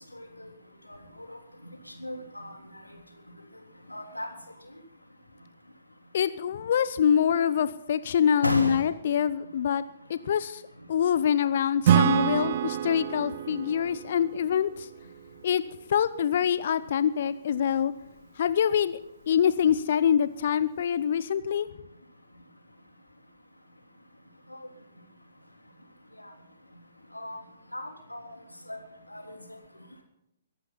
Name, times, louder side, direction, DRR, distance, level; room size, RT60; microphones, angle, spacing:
voice 1, 0.1-0.5 0.9-1.4 2.0-2.6 3.9-4.3 8.4-8.8 24.5-24.6 27.1-27.4 27.7-28.4 28.7-28.8 29.1-29.4, left 1 dB, 85° left, 3 dB, 3.3 m, -34 dB
voice 2, 6.1-9.8 10.1-10.6 10.9-14.9 15.4-15.6 15.9-17.9 18.4-19.0 19.3-21.7, left 8 dB, 50° left, 15 dB, 0.7 m, -25 dB
Acoustic guitar / Strum, 11.8-15.4, right 10 dB, 45° right, 0.8 m, -26 dB
22.5 x 11.5 x 4.0 m, 0.82 s
figure-of-eight pair, 125°, 0 cm